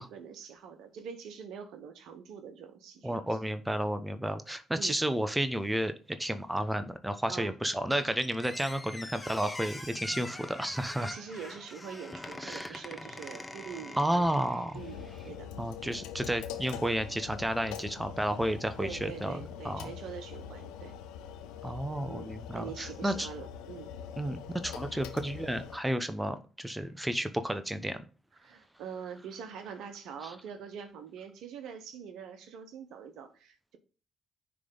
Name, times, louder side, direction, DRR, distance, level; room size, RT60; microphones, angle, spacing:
voice 1, 0.0-3.2 4.8-5.0 7.3-7.5 11.0-15.5 18.8-20.9 22.1-23.9 28.4-33.8, right 7 dB, 70° right, 1.0 m, -44 dB
voice 2, 3.0-11.2 12.4-12.8 14.0-14.8 15.6-19.4 19.6-19.9 21.6-23.3 24.2-28.0 30.2-30.3, right 1 dB, 10° right, 0.9 m, -32 dB
Squeak, 7.9-14.8, left 2 dB, 20° left, 0.9 m, -44 dB
sound 1, 8.5-15.4, right 1 dB, 35° right, 2.9 m, -55 dB
sound 2, 14.7-25.8, left 8 dB, 80° left, 0.6 m, -43 dB
9.7 x 3.4 x 3.9 m
hypercardioid pair, 45°, 0 cm